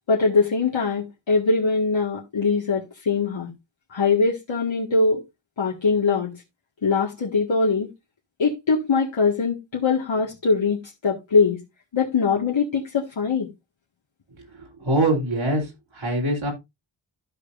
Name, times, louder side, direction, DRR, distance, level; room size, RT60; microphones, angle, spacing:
voice 1, 0.1-3.5 3.9-5.2 5.6-6.3 6.8-7.9 8.4-11.6 11.9-13.5, left 4 dB, 75° left, 1.7 m, -22 dB
voice 2, 14.8-15.6 15.9-16.5, right 1 dB, 80° right, 3.1 m, -22 dB
14.0 x 5.2 x 2.5 m
wide cardioid pair, 85°, 46 cm